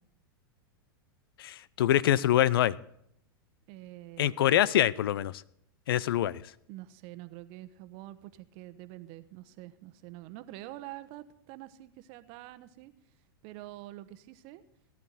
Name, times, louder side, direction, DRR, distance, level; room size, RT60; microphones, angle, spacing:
voice 1, 1.4-2.8 4.2-5.4 5.9-6.4, left 12 dB, 70° left, 22 dB, 0.5 m, -25 dB
voice 2, 3.7-4.6 6.7-12.9 13.4-14.6, right 16 dB, 50° right, 13 dB, 1.0 m, -46 dB
18.0 x 11.0 x 4.1 m, 0.74 s
hypercardioid pair, 105°, 12 cm